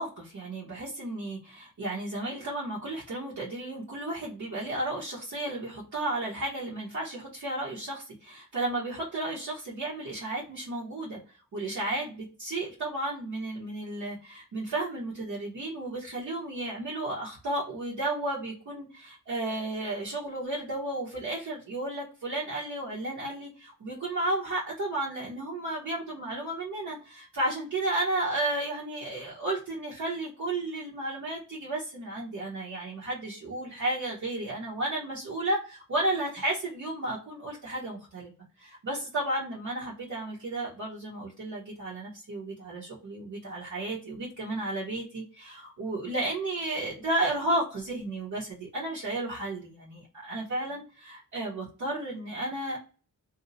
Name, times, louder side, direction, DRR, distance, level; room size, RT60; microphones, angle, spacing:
voice 1, 0.0-11.2 11.5-38.3 38.6-52.8, right 2 dB, 65° right, -7 dB, 1.1 m, -33 dB
2.7 x 2.1 x 4.0 m, 0.35 s
wide cardioid pair, 135°, 31 cm